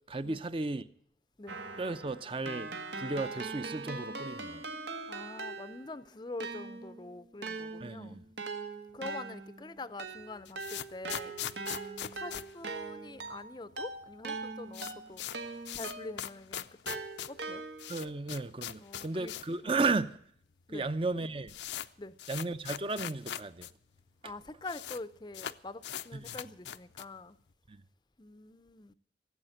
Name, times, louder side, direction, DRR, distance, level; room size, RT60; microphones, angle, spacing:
voice 1, 0.1-0.8 1.8-4.6 7.8-8.3 17.9-20.2 20.7-21.5 22.3-23.7 26.2-26.4 27.7-27.8, right 3 dB, 30° right, 0.6 m, -34 dB
Keyboard (musical), 1.5-6.0 6.4-16.3 16.9-18.1, right 3 dB, 85° right, 1.7 m, -41 dB
voice 2, 5.1-8.2 8.9-11.4 12.0-15.2 15.7-17.6 18.8-19.3 19.6-19.7 20.7-20.9 22.0-22.1 24.2-27.4 28.2-28.9, left 2 dB, 25° left, 0.5 m, -45 dB
sound 1, 10.2-13.4 13.7-13.8 14.0-14.1 14.4-19.6 19.9-20.0 20.7-20.8 21.0-23.7 24.0-24.1 24.3-25.0 25.3-27.2, left 10 dB, 80° left, 0.6 m, -41 dB
16.0 x 8.1 x 7.8 m
head